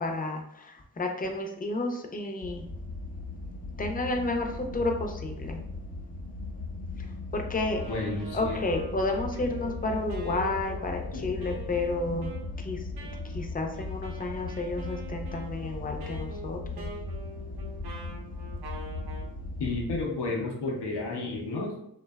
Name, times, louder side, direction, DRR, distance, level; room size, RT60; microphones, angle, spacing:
voice 1, 0.0-2.6 3.8-5.6 7.0-7.9 8.3-12.3 12.6-12.9 13.2-16.9, left 2 dB, 25° left, 2 dB, 0.4 m, -31 dB
sound 1, 2.4-20.0, left 2 dB, 65° left, 1.0 m, -38 dB
Wind instrument woodwind instrument, 7.6-19.3, right 1 dB, 70° right, 0.6 m, -44 dB
voice 2, 7.9-8.6 11.1-11.3 12.1-12.2 19.6-21.8, left 2 dB, 85° left, -2 dB, 0.6 m, -32 dB
2.6 x 2.2 x 2.2 m, 0.78 s
cardioid pair, 50°, 39 cm